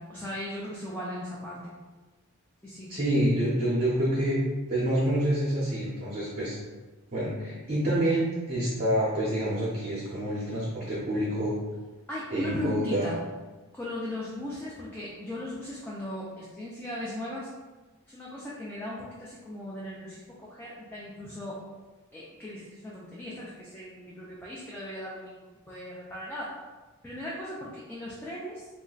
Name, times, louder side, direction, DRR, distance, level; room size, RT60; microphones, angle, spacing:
voice 1, 0.0-1.7 2.6-2.9 12.1-13.2 13.7-17.5 18.1-21.6 22.1-26.5 27.0-28.7, left 1 dB, 10° left, -7 dB, 0.3 m, -38 dB
voice 2, 2.9-4.4 4.7-6.6 7.1-11.5 12.3-13.1, right 1 dB, 35° right, -8 dB, 0.6 m, -27 dB
2.4 x 2.2 x 3.7 m, 1.2 s
head